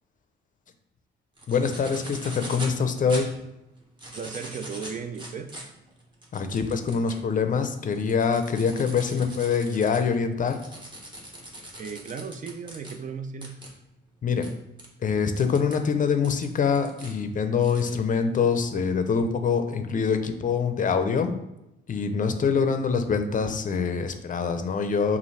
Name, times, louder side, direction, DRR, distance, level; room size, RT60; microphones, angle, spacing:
sound 1, 1.4-2.8 3.1-3.2 3.8-7.2 7.7-12.9 13.4-13.7 14.4-14.5 14.8-14.9 15.4-15.8 16.2-17.1 17.6-17.9, right 1 dB, 25° right, 1.2 m, -41 dB
voice 1, 1.5-3.3 6.3-10.6 14.2-14.5 15.0-21.3 21.9-25.2, left 5 dB, 40° left, 8 dB, 0.5 m, -25 dB
voice 2, 4.1-5.6 11.8-13.7, right 6 dB, 40° right, 8 dB, 0.5 m, -36 dB
5.3 x 2.5 x 3.2 m, 0.90 s
cardioid pair, 90°, 20 cm